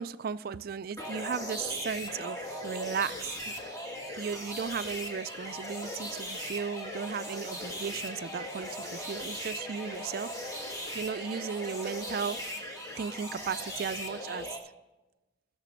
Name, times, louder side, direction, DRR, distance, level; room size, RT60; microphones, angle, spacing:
voice 1, 0.0-3.8 4.2-10.3 10.9-12.4 12.7-14.5, right 6 dB, 50° right, 15 dB, 0.3 m, -36 dB
sound 1, 1.0-14.6, left 1 dB, 20° left, 1.4 m, -39 dB
16.5 x 6.7 x 5.2 m, 1.1 s
head